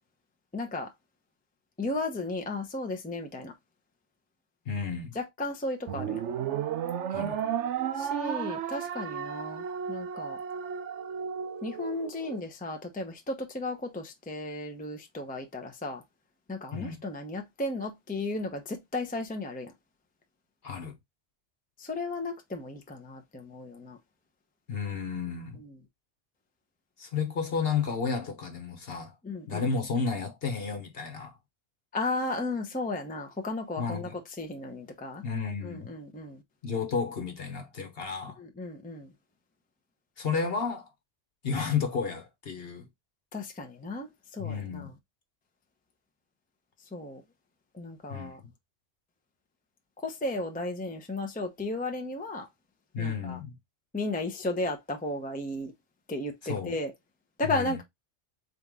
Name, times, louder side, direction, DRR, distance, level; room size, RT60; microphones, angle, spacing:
voice 1, 0.5-0.9 1.8-3.5 5.1-6.2 8.0-10.4 11.6-16.0 16.5-19.7 21.8-24.0 25.5-25.8 29.2-29.7 31.9-35.2 35.6-36.4 38.4-39.1 43.3-44.9 46.9-47.2 47.7-48.4 50.0-52.5 53.0-53.4 53.9-55.7 56.1-56.9 57.4-57.8, left 2 dB, 10° left, 0.7 m, -34 dB
voice 2, 4.6-5.2 7.1-7.4 16.7-17.0 20.6-21.0 24.7-25.6 27.0-29.1 29.5-31.3 33.8-34.2 35.2-35.9 36.6-38.4 40.2-40.9 41.4-42.9 44.4-44.9 48.1-48.5 52.9-53.6 56.4-56.7 57.4-57.8, left 5 dB, 55° left, 1.2 m, -32 dB
sound 1, 5.9-12.4, right 8 dB, 70° right, 1.0 m, -33 dB
4.0 x 3.4 x 3.6 m
omnidirectional pair, 1.3 m